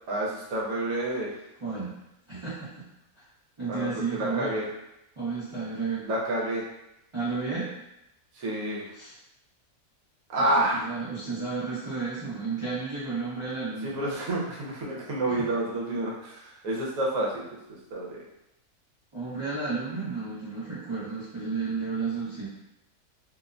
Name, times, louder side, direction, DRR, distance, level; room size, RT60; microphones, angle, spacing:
voice 1, 0.1-1.3 3.7-4.7 6.0-6.6 8.3-8.9 10.3-10.9 13.8-17.5 17.9-18.2, right 1 dB, 65° right, -4 dB, 1.1 m, -29 dB
voice 2, 1.6-1.9 2.3-2.8 3.6-4.6 5.2-6.1 7.1-7.7 9.0-9.1 10.4-14.0 19.1-22.5, right 4 dB, 30° right, -12 dB, 0.5 m, -32 dB
2.8 x 2.1 x 2.4 m, 0.87 s
omnidirectional pair, 1.6 m